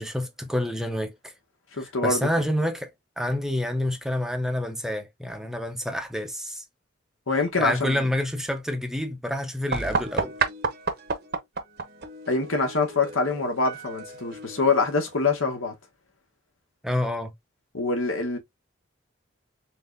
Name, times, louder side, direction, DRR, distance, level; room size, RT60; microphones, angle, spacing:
voice 1, 0.0-1.3 1.8-6.6 7.6-10.3 16.8-17.3, left 1 dB, ahead, 0.6 m, -28 dB
voice 2, 1.7-2.2 7.3-8.0 12.3-15.7 17.7-18.4, left 3 dB, 90° left, 1.5 m, -25 dB
sound 1, 9.7-15.3, right 4 dB, 50° right, 0.8 m, -32 dB
4.0 x 3.6 x 2.6 m
head